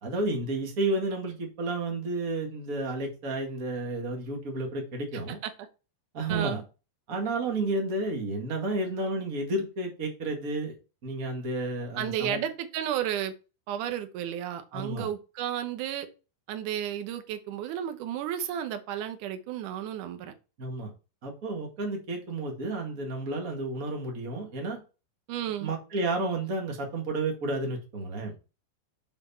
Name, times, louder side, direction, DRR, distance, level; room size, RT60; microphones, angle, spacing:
voice 1, 0.0-5.4 6.1-6.6 7.1-10.7 11.0-12.4 14.7-15.1 20.6-20.9 21.2-24.8 25.6-28.3, right 2 dB, 35° right, 1 dB, 1.4 m, -31 dB
voice 2, 6.3-6.6 12.0-13.3 13.7-16.1 16.5-20.3 25.3-25.7, right 10 dB, 75° right, 8 dB, 2.0 m, -32 dB
7.0 x 6.3 x 4.3 m, 0.32 s
omnidirectional pair, 4.8 m